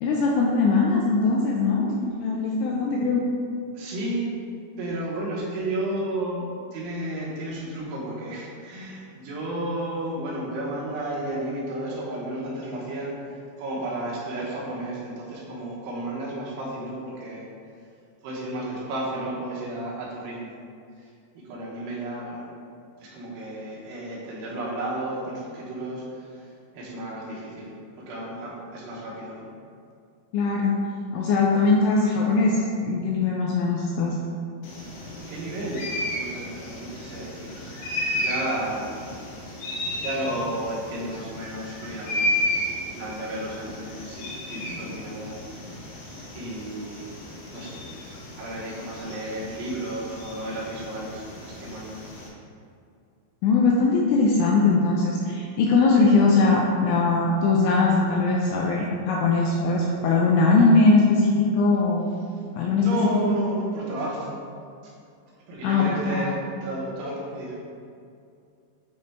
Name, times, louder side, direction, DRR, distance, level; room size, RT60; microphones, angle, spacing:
voice 1, 0.0-3.2 30.3-30.8 31.1-34.2 53.4-62.1 62.5-63.4 65.6-66.3, left 3 dB, 85° left, -2 dB, 2.7 m, -21 dB
voice 2, 3.7-4.3 4.8-6.4 6.7-17.5 18.2-20.6 21.0-21.1 21.3-22.5 23.0-26.5 26.7-27.7 28.0-29.5 35.3-37.8 38.1-39.1 39.6-39.7 40.0-42.2 42.9-45.4 45.7-45.8 46.3-47.1 47.5-47.8 48.4-52.0 62.3-62.4 62.8-64.3 64.8-64.9 65.5-67.6, right 1 dB, 80° right, -6 dB, 3.3 m, -32 dB
sound 1, 34.6-52.3, left 1 dB, 70° left, 2.8 m, -33 dB
9.3 x 3.2 x 3.3 m, 2.4 s
omnidirectional pair, 5.8 m